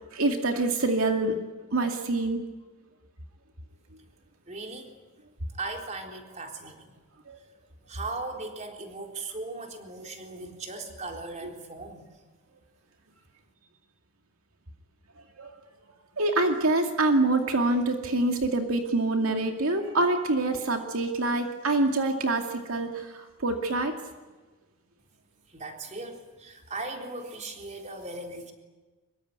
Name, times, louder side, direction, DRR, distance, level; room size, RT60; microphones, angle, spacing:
voice 1, 0.1-1.4 1.7-2.4 7.3-7.4 15.4-15.5 16.2-22.9 23.4-23.9, right 2 dB, 80° right, 4 dB, 2.4 m, -25 dB
voice 2, 4.5-4.9 5.5-6.9 7.9-12.1 25.5-28.5, right 2 dB, 35° right, 2 dB, 3.8 m, -38 dB
25.0 x 22.5 x 9.5 m, 1.2 s
head